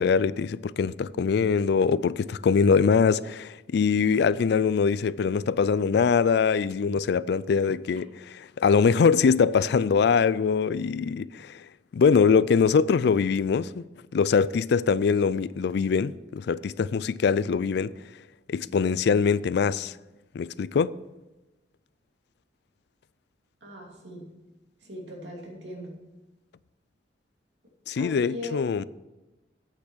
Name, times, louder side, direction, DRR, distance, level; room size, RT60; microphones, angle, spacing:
voice 1, 0.0-11.7 11.9-13.8 14.1-17.9 18.5-19.9 20.3-21.0 27.9-28.8, left 5 dB, 65° left, 0.3 m, -23 dB
voice 2, 23.6-24.2 24.8-25.9 27.9-28.9, left 1 dB, 75° right, 2.8 m, -39 dB
8.6 x 8.4 x 6.3 m
head